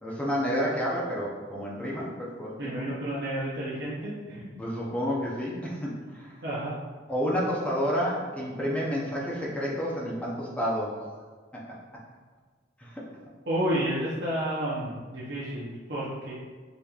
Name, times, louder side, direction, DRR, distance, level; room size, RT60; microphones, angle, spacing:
voice 1, 0.0-2.9 4.6-6.4 7.1-10.9 11.5-11.6 12.8-13.0, equal, 5° left, -5 dB, 0.6 m, -30 dB
voice 2, 2.6-4.5 6.4-6.8 13.5-16.3, right 1 dB, 70° right, -8 dB, 0.7 m, -31 dB
5.1 x 2.9 x 2.4 m, 1.5 s
head